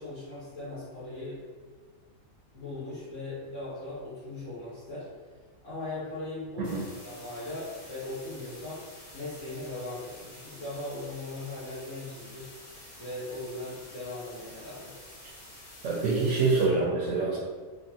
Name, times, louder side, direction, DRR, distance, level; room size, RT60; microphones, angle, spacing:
voice 1, 0.0-1.5 2.5-5.1 5.6-8.8 9.1-12.5 13.0-15.0, left 2 dB, 60° left, -13 dB, 1.6 m, -39 dB
sound 1, 6.6-16.6, left 1 dB, 80° left, 1.5 m, -49 dB
voice 2, 15.8-17.4, right 3 dB, 65° right, -2 dB, 1.0 m, -26 dB
4.3 x 2.8 x 2.8 m, 1.4 s
omnidirectional pair, 1.5 m